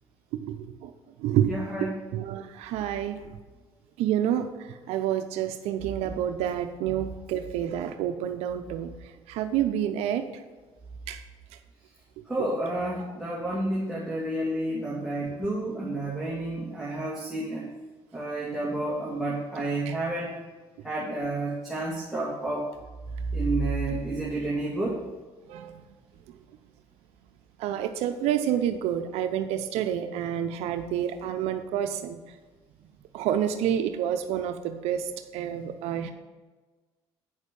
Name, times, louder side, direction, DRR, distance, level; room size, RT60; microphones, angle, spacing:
voice 1, 0.4-0.9 1.2-1.5 1.8-3.2 4.0-4.5 4.9-8.9 9.3-10.2 11.1-11.2 19.9-20.0 25.5-25.7 27.6-32.2 33.1-36.1, right 10 dB, 85° right, 8 dB, 0.7 m, -28 dB
voice 2, 1.5-1.9 12.3-17.7 18.1-20.4 20.8-22.7 23.3-25.1, right 2 dB, 5° right, -6 dB, 2.1 m, -30 dB
8.8 x 6.4 x 5.3 m, 1.3 s
cardioid pair, 100°, 10 cm